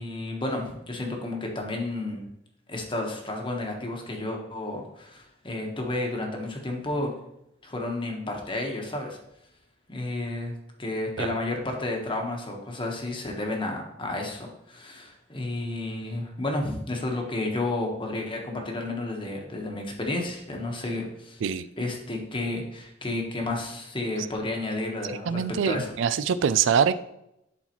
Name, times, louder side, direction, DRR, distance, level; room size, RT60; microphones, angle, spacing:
voice 1, 0.0-2.3 2.7-7.1 7.6-9.2 9.9-10.5 10.8-21.4 21.8-25.9, left 2 dB, 25° left, 1 dB, 1.1 m, -31 dB
voice 2, 25.1-26.9, right 7 dB, 65° right, 14 dB, 0.4 m, -24 dB
11.0 x 4.0 x 3.0 m, 0.82 s
head